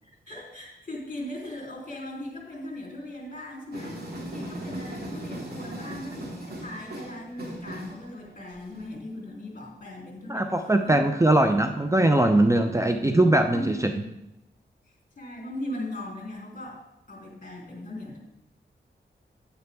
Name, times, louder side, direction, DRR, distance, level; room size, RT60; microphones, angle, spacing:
voice 1, 0.0-10.5 10.8-11.6 12.2-13.1 13.5-14.1 15.2-16.8 17.1-18.2, left 1 dB, 45° left, -2 dB, 3.3 m, -39 dB
sound 1, 3.7-8.9, right 1 dB, 55° right, 2.4 m, -38 dB
voice 2, 10.3-13.9, right 1 dB, 15° right, 6 dB, 0.6 m, -21 dB
9.4 x 9.2 x 3.5 m, 0.87 s
cardioid pair, 65°, 19 cm